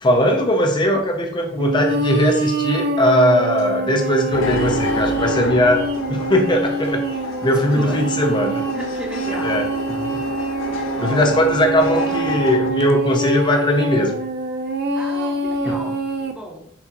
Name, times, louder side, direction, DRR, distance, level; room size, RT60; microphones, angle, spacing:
voice 1, 0.0-7.0 7.4-8.6 9.4-9.7 10.0-10.2 11.0-14.2 15.7-15.8, left 1 dB, 25° left, 3 dB, 0.6 m, -19 dB
sound 1, 1.6-16.3, right 3 dB, 55° right, 0.4 m, -25 dB
sound 2, 4.3-12.7, left 3 dB, 75° left, 0.6 m, -29 dB
voice 2, 7.7-8.1 8.7-9.7 10.7-11.6 14.9-16.7, right 1 dB, 5° right, -1 dB, 0.9 m, -34 dB
5.8 x 2.8 x 2.9 m, 0.69 s
head